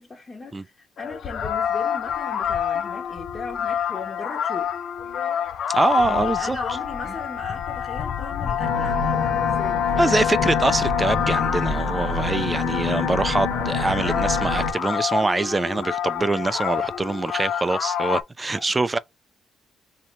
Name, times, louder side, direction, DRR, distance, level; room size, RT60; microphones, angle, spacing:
voice 1, 0.0-4.7 6.0-10.3 18.5-18.8, left 3 dB, 30° left, 1.1 m, -38 dB
sound 1, 1.0-18.2, left 9 dB, 65° left, 0.5 m, -27 dB
voice 2, 5.7-6.6 10.0-19.0, right 2 dB, 20° right, 0.4 m, -24 dB
sound 2, 8.6-14.7, left 4 dB, 85° left, 1.1 m, -26 dB
2.8 x 2.8 x 4.3 m
cardioid pair, 90°, 0 cm